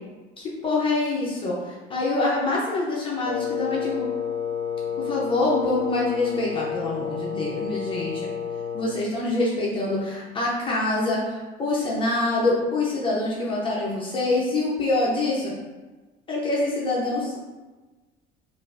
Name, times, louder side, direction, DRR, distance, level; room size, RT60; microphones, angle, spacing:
voice 1, 0.4-4.1 5.0-8.3 8.7-15.6 16.3-17.4, left 2 dB, 25° left, -5 dB, 0.7 m, -25 dB
Wind instrument woodwind instrument, 3.2-9.0, left 7 dB, 65° left, 0.6 m, -30 dB
5.0 x 2.6 x 2.5 m, 1.2 s
cardioid pair, 150°, 20 cm